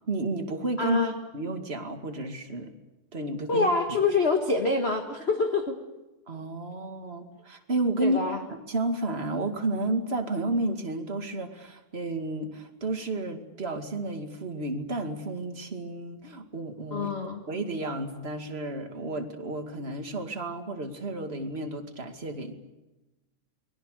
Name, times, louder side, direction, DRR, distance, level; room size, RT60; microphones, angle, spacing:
voice 1, 0.1-1.0 1.3-2.7 3.1-3.7 6.3-8.2 8.7-17.1 17.5-22.6, right 2 dB, 20° right, 4 dB, 2.0 m, -31 dB
voice 2, 0.8-1.2 3.5-5.7 8.0-8.4 16.9-17.4, left 3 dB, 30° left, 4 dB, 1.3 m, -26 dB
29.5 x 22.0 x 6.7 m, 1.0 s
omnidirectional pair, 3.6 m